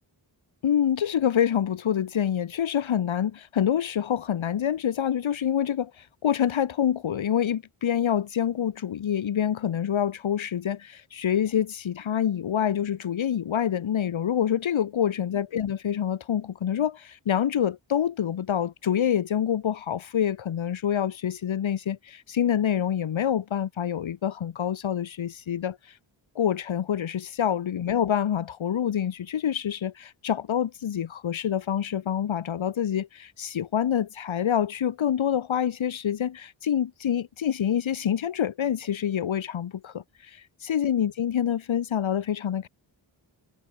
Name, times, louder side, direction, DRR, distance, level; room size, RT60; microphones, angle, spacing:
voice 1, 0.6-26.0 26.3-40.3 40.6-42.7, left 9 dB, 75° left, 1.7 m, -26 dB
cardioid pair, 70°, 48 cm